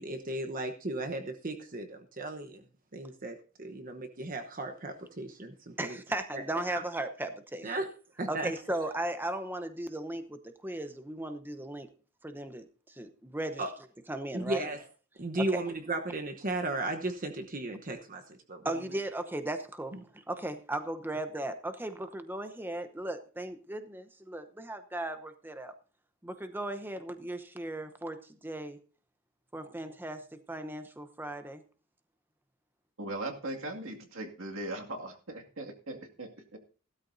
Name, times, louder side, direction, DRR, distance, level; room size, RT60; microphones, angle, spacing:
voice 1, 0.0-2.6 2.9-6.0 6.3-6.4 6.7-6.8 7.6-7.9 8.2-8.5 13.6-13.7 14.3-14.8 15.2-18.9 19.9-20.0, right 2 dB, 40° right, 5 dB, 1.0 m, -35 dB
voice 2, 5.8-7.7 8.3-11.9 12.2-13.6 14.1-14.7 15.4-15.6 18.6-25.7 26.2-28.8 29.5-31.6, right 1 dB, 10° right, 9 dB, 0.8 m, -37 dB
voice 3, 33.0-36.6, right 1 dB, 75° right, 2 dB, 2.2 m, -39 dB
16.0 x 12.5 x 2.7 m, 0.37 s
head